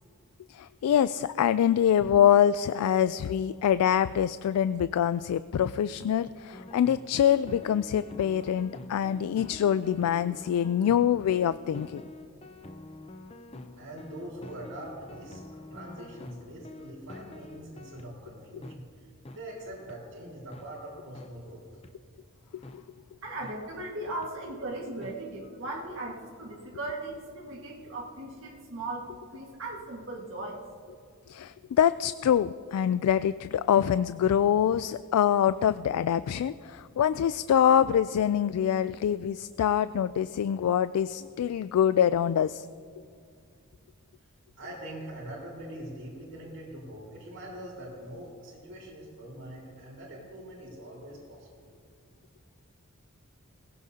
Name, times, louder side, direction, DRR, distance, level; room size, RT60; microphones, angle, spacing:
voice 1, 0.5-12.0 22.5-22.8 31.3-42.7, left 9 dB, 90° left, 14 dB, 0.3 m, -25 dB
sound 1, 6.5-18.1 18.6-18.8 19.2-19.4 19.9-20.0 20.5-20.7 21.1-21.3 21.8-21.9 22.6-22.8 23.4-23.6 24.2-24.3 25.0-25.1, left 2 dB, 25° left, 0.6 m, -46 dB
voice 2, 13.8-21.6 44.5-51.7, right 1 dB, 85° right, -9 dB, 4.3 m, -43 dB
voice 3, 23.2-30.6, right 2 dB, 60° right, -2 dB, 1.7 m, -38 dB
20.0 x 16.5 x 2.8 m, 2.2 s
head